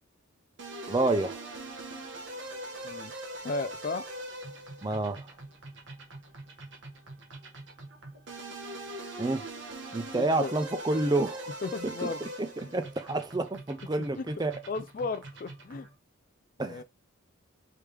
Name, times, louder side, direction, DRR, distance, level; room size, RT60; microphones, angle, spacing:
sound 1, 0.6-15.9, right 2 dB, 60° right, 1.3 m, -42 dB
voice 1, 0.9-1.4 4.8-5.3 9.2-9.5 9.9-11.5 11.8-12.1 12.4-14.6 16.6-16.8, right 2 dB, 20° right, 0.4 m, -29 dB
voice 2, 3.4-4.1 10.1-10.5 11.6-12.3 12.6-12.7 14.2-14.3 14.7-15.9 16.6-16.8, left 4 dB, 40° left, 0.4 m, -35 dB
4.8 x 3.2 x 3.4 m
head